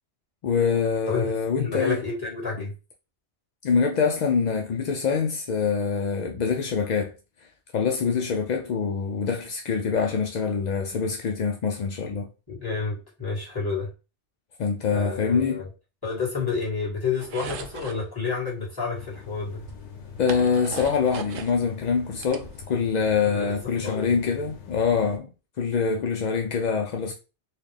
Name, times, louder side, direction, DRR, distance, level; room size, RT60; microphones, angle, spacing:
voice 1, 0.4-2.0 3.6-7.1 7.7-12.3 14.6-15.6 20.2-25.3 25.6-27.1, left 5 dB, 60° left, 0.4 m, -25 dB
voice 2, 1.6-2.7 12.5-13.9 14.9-15.7 16.0-19.6 23.2-24.1, left 5 dB, 20° left, 1.6 m, -30 dB
sound 1, 17.2-18.0 19.2-19.3 19.7-21.6 22.0-23.0, right 7 dB, 60° right, 0.6 m, -38 dB
sound 2, 18.9-25.2, left 6 dB, 90° left, 0.9 m, -43 dB
4.1 x 2.3 x 3.3 m
omnidirectional pair, 1.2 m